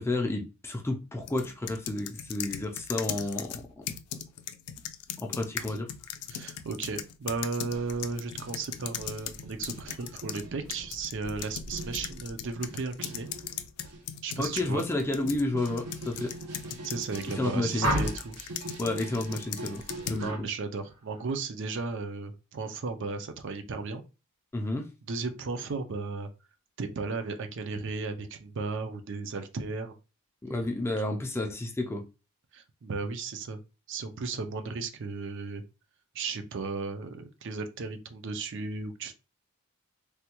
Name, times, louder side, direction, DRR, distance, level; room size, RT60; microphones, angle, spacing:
voice 1, 0.0-3.8 5.2-5.9 14.4-16.3 17.4-17.9 18.8-19.8 20.1-20.5 24.5-24.9 30.4-32.0, left 2 dB, 10° left, 0.4 m, -31 dB
sound 1, 1.3-10.4 10.7-17.4 18.0-20.3, left 10 dB, 90° left, 0.4 m, -39 dB
voice 2, 6.3-13.3 14.2-14.8 16.8-18.4 20.1-24.0 25.1-26.3 26.8-29.9 32.5-33.6 33.9-35.6 36.1-39.1, right 4 dB, 55° right, 0.5 m, -35 dB
sound 2, 7.7-14.0 14.3-20.3, right 2 dB, 90° right, 0.8 m, -43 dB
sound 3, 17.8-18.4 20.2-20.4 20.8-21.2, equal, 70° right, 1.2 m, -30 dB
3.3 x 2.2 x 2.9 m
head